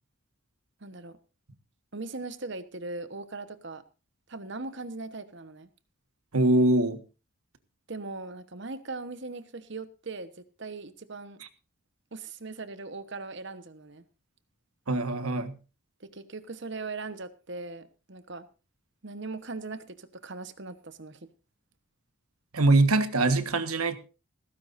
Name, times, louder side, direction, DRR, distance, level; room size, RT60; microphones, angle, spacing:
voice 1, 0.8-1.2 1.9-3.8 4.3-5.7 7.9-11.4 12.1-14.0 16.0-18.5 19.0-21.3, right 3 dB, 55° right, 12 dB, 1.1 m, -39 dB
voice 2, 6.3-7.0 14.9-15.5 22.5-24.0, right 2 dB, 90° right, 10 dB, 1.5 m, -23 dB
17.0 x 15.0 x 2.6 m, 0.33 s
head